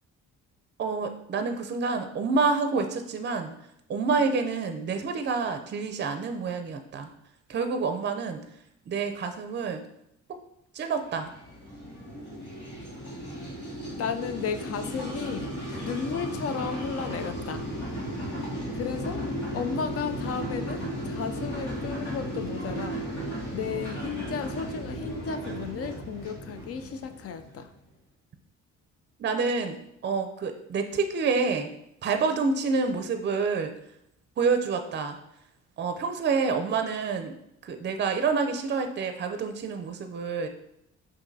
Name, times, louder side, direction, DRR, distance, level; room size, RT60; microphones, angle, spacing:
voice 1, 0.8-3.5 3.9-7.1 7.5-8.4 8.9-9.8 10.8-11.3 29.2-29.8 30.0-31.7 32.0-33.7 34.4-35.2 35.8-37.4 37.6-40.5, right 4 dB, 35° right, 7 dB, 0.5 m, -28 dB
sound 1, 11.1-27.7, equal, 80° left, 1.4 m, -35 dB
voice 2, 14.0-15.5 15.8-17.7 18.7-19.2 19.5-23.0 23.5-27.7, left 6 dB, 50° left, 9 dB, 0.4 m, -34 dB
5.7 x 2.6 x 2.7 m, 0.77 s
cardioid pair, 90°, 30 cm